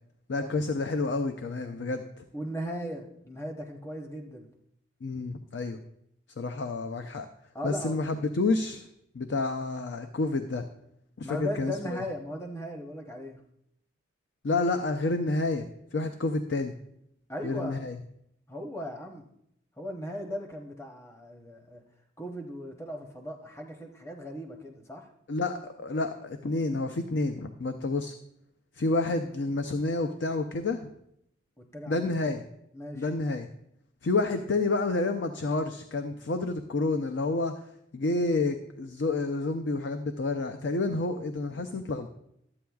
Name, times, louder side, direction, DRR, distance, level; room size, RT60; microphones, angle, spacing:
voice 1, 0.3-2.1 5.0-5.8 6.4-7.3 7.6-8.8 9.1-10.6 11.2-12.0 14.4-16.7 17.4-18.0 25.3-28.1 28.8-30.9 31.9-32.4 33.0-33.5 34.0-37.5 37.9-42.1, left 3 dB, 70° left, 7 dB, 0.5 m, -29 dB
voice 2, 2.3-4.5 7.5-8.0 11.2-13.4 17.3-17.8 18.5-19.3 19.8-21.8 22.2-25.1 31.6-32.1 32.7-33.0, equal, 15° left, 2 dB, 0.8 m, -37 dB
13.0 x 8.5 x 2.3 m, 0.75 s
head